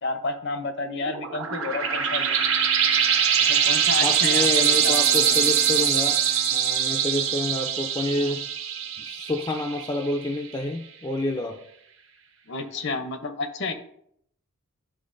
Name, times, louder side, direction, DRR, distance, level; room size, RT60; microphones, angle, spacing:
voice 1, 0.0-2.4 3.5-5.5 12.5-13.7, left 3 dB, 55° left, 8 dB, 0.7 m, -31 dB
sound 1, 1.1-10.2, right 8 dB, 65° right, 0.8 m, -23 dB
voice 2, 4.0-6.2 6.5-8.4 9.0-11.6, left 2 dB, 20° left, 4 dB, 0.3 m, -28 dB
11.5 x 3.8 x 2.6 m, 0.69 s
head